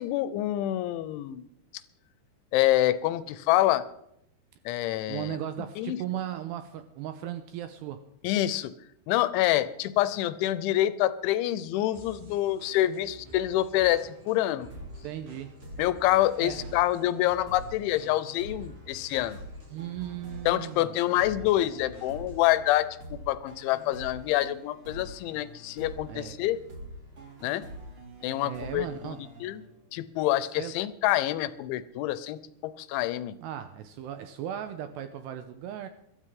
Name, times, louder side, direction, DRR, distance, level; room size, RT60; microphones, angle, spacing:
voice 1, 0.0-1.5 2.5-3.8 4.7-5.4 5.8-6.0 8.2-8.7 9.1-14.7 15.8-19.4 20.5-26.6 27.4-27.6 28.2-29.6 29.9-33.4, left 14 dB, 80° left, 15 dB, 3.0 m, -27 dB
voice 2, 5.1-8.0 15.0-15.5 16.4-16.6 19.7-20.9 26.1-26.4 28.4-29.2 30.6-30.7 33.4-35.9, right 11 dB, 85° right, 9 dB, 2.5 m, -36 dB
sound 1, 11.9-22.6, right 1 dB, 55° right, 6.3 m, -52 dB
sound 2, 14.7-30.1, equal, 30° right, 3.0 m, -45 dB
22.0 x 13.0 x 3.7 m, 0.76 s
omnidirectional pair, 5.5 m